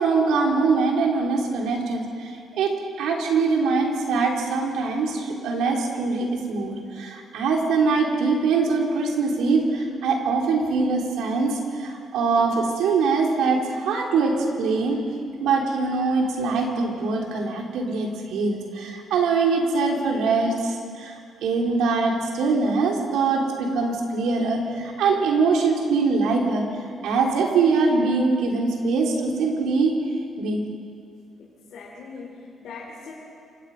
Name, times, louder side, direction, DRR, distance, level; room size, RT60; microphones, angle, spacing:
voice 1, 0.0-15.0 15.4-26.6 27.0-29.9 30.4-30.6, right 4 dB, 85° right, 0 dB, 3.7 m, -23 dB
voice 2, 31.4-33.1, left 4 dB, 70° left, -3 dB, 4.2 m, -41 dB
28.5 x 17.0 x 5.6 m, 2.3 s
cardioid pair, 90°, 0 cm